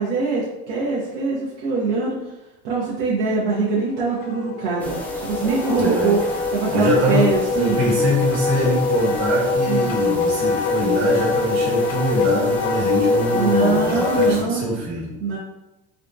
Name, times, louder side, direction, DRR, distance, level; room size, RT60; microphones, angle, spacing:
voice 1, 0.0-2.2 2.6-6.2 6.5-7.8 9.6-10.0 13.3-14.7 15.2-15.4, right 4 dB, 75° right, -6 dB, 0.8 m, -23 dB
Wind instrument woodwind instrument, 3.3-14.3, left 3 dB, 85° left, 0.6 m, -23 dB
sound 1, 4.8-14.4, equal, 5° left, 0.4 m, -32 dB
voice 2, 5.8-6.2 6.7-7.3 7.6-15.1, equal, 50° right, -4 dB, 1.2 m, -23 dB
3.5 x 2.3 x 2.6 m, 0.99 s
cardioid pair, 145°, 34 cm